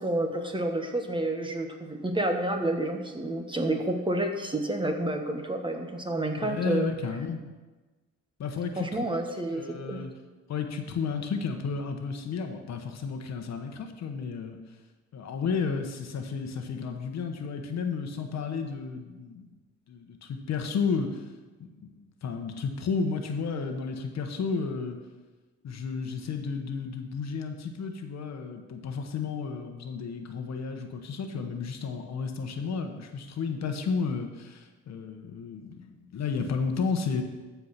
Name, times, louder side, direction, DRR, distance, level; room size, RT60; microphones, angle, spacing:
voice 1, 0.0-6.9 8.8-10.0, right 1 dB, 15° right, 4 dB, 1.3 m, -29 dB
voice 2, 6.3-7.4 8.4-9.2 9.5-10.1 10.5-14.6 15.1-19.5 19.9-21.3 21.6-25.0 25.6-37.2, left 5 dB, 60° left, 6 dB, 1.2 m, -32 dB
14.0 x 4.8 x 5.8 m, 1.3 s
cardioid pair, 90°, 30 cm